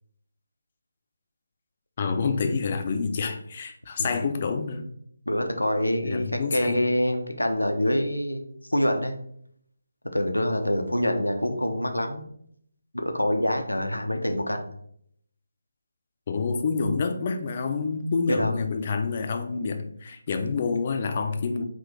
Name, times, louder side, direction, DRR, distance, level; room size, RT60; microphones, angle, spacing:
voice 1, 2.0-4.8 6.0-6.9 16.3-21.6, left 4 dB, 30° left, 6 dB, 0.4 m, -28 dB
voice 2, 5.3-8.4 8.7-9.2 10.1-12.3 12.9-14.7 18.3-18.5, left 1 dB, 85° left, 5 dB, 0.5 m, -25 dB
3.7 x 2.5 x 3.6 m, 0.68 s
figure-of-eight pair, 150°, 0 cm